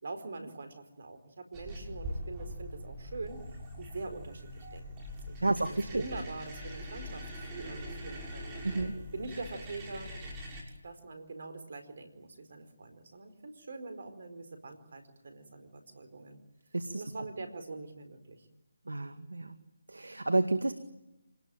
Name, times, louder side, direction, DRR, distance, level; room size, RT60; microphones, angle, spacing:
voice 1, 0.0-3.4 3.8-7.2 7.5-8.6 9.1-10.1 10.8-16.4 17.0-18.5, right 3 dB, 55° right, 8 dB, 4.4 m, -43 dB
sound 1, 1.5-10.6, equal, 20° right, 6.2 m, -42 dB
voice 2, 5.4-6.0 8.6-8.9 16.7-17.0 18.9-19.6 19.9-20.7, right 2 dB, 80° right, 9 dB, 2.1 m, -30 dB
27.0 x 20.0 x 9.2 m, 0.95 s
figure-of-eight pair, 155°, 0 cm